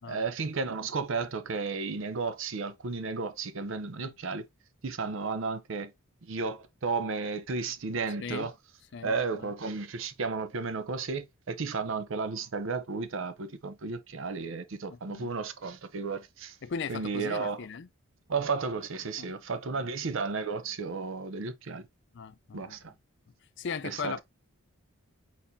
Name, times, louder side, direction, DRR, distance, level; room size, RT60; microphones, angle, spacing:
voice 1, 0.0-4.5 4.8-5.9 6.2-8.5 9.0-16.6 16.9-17.7 18.3-21.8 22.5-22.9 23.8-24.2, right 4 dB, 60° right, 0.6 m, -33 dB
voice 2, 14.9-15.3 16.6-17.9 19.2-19.3 19.8-19.9 22.1-22.8 23.6-24.2, left 6 dB, 50° left, 0.4 m, -38 dB
4.2 x 4.1 x 2.6 m
head